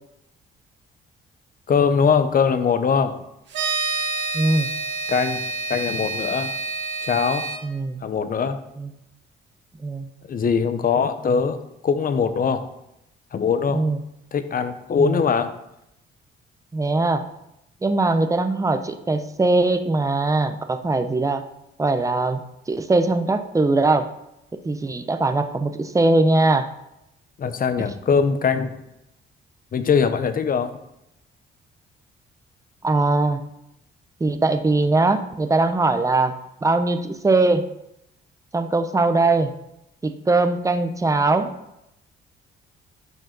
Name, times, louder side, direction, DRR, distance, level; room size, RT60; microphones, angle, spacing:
voice 1, 1.7-3.2 5.1-5.4 5.7-6.5 7.0-7.5 8.0-8.6 10.3-12.7 13.3-13.8 14.3-15.5 27.4-28.8 29.7-30.8, left 6 dB, 45° left, 10 dB, 0.9 m, -21 dB
sound 1, 3.5-7.6, right 3 dB, 65° right, 1.7 m, -28 dB
voice 2, 4.3-4.7 7.6-8.0 8.8-8.9 9.8-10.1 13.7-14.0 15.0-15.2 16.7-17.2 17.8-21.4 21.8-24.1 24.6-26.7 27.8-27.9 32.8-33.4 34.2-37.7 38.5-39.5 40.0-41.5, right 2 dB, 15° right, 8 dB, 0.7 m, -21 dB
12.0 x 5.0 x 4.0 m, 0.85 s
cardioid pair, 90°, 20 cm